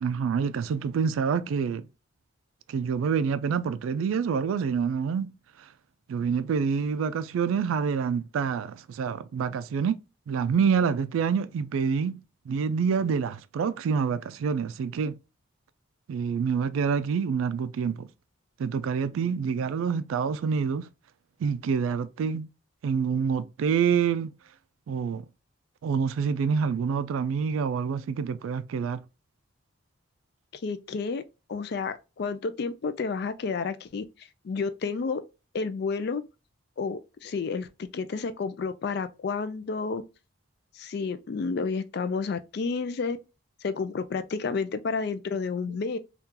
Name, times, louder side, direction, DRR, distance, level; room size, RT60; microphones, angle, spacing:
voice 1, 0.0-1.9 2.7-5.3 6.1-10.0 10.3-12.2 12.5-15.1 16.1-18.1 18.6-20.9 21.4-22.5 22.8-24.3 24.9-25.3 25.8-29.0, right 6 dB, 80° right, 0.3 m, -27 dB
voice 2, 30.6-31.2 31.5-34.1 34.4-35.2 35.5-36.2 36.8-40.0 40.8-43.2 43.6-46.0, left 4 dB, 50° left, 0.3 m, -30 dB
3.7 x 2.3 x 2.8 m
head